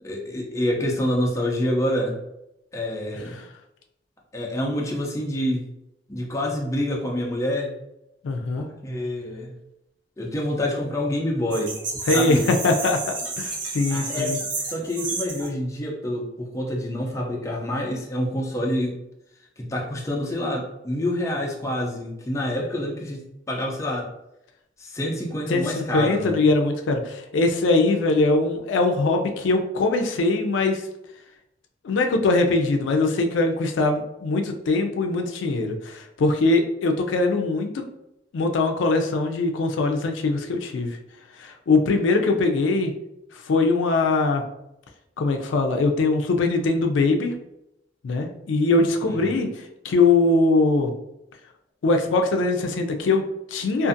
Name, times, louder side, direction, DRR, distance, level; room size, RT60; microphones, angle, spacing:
voice 1, 0.0-2.2 2.7-3.4 4.3-5.7 6.1-7.7 8.6-9.6 10.2-11.8 12.1-12.4 13.9-14.4 14.7-19.0 19.6-24.1 24.8-26.4 49.1-49.4, left 1 dB, 15° left, -1 dB, 0.4 m, -27 dB
voice 2, 8.2-8.7 12.1-14.4 25.5-30.8 31.8-37.8 38.3-41.0 41.4-42.9 43.3-44.4 45.2-47.3 48.0-50.9 51.8-53.9, left 3 dB, 90° left, 4 dB, 0.4 m, -22 dB
sound 1, 11.5-15.5, right 3 dB, 85° right, 0.8 m, -31 dB
2.5 x 2.5 x 2.5 m, 0.85 s
head